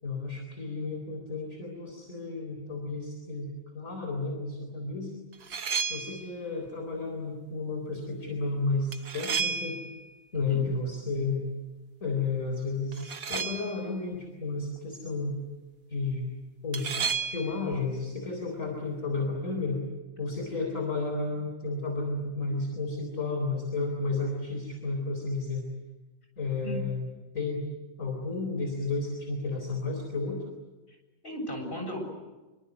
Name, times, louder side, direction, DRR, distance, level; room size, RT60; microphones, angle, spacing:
voice 1, 0.0-3.5 3.7-5.1 5.8-9.8 10.3-11.4 12.0-15.4 15.9-16.2 16.6-16.9 17.3-19.8 20.2-25.6 26.4-27.1 27.3-27.6 28.0-30.4, left 3 dB, 50° left, 2 dB, 4.4 m, -32 dB
sound 1, 5.3-6.3 8.9-10.1 12.9-13.9 16.7-17.7, right 5 dB, 55° right, 1.5 m, -32 dB
voice 2, 31.2-32.1, equal, 30° left, 2 dB, 7.9 m, -35 dB
26.0 x 25.0 x 8.1 m, 1.1 s
omnidirectional pair, 1.8 m